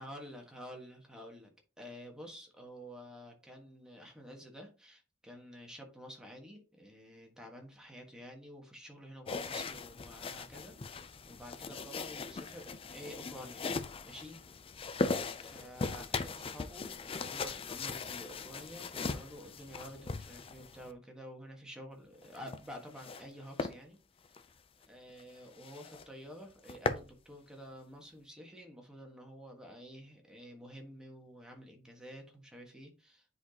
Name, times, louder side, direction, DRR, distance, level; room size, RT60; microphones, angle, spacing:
voice 1, 0.0-13.7 14.0-14.4 15.3-24.0 24.2-24.4 24.8-33.3, equal, 5° right, 1.4 m, -50 dB
sound 1, 9.3-20.9 22.2-23.3 23.6-23.8 24.2-24.4 24.8-24.9 25.2-25.3 25.6-26.1 26.4-27.1, left 4 dB, 30° left, 0.4 m, -39 dB
9.7 x 4.0 x 2.9 m
head